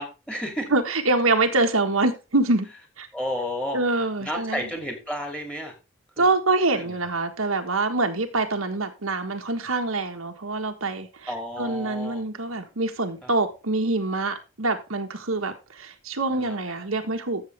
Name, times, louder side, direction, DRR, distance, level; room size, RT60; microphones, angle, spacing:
voice 1, 0.0-0.7 3.1-3.8 4.2-5.7 6.2-6.3 6.7-6.9 11.3-12.2 13.2-13.3 16.3-16.5, equal, 5° left, 2.7 m, -32 dB
voice 2, 0.7-2.7 3.0-3.1 3.7-4.7 6.2-17.4, right 2 dB, 90° right, 1.6 m, -25 dB
13.5 x 7.3 x 3.5 m
head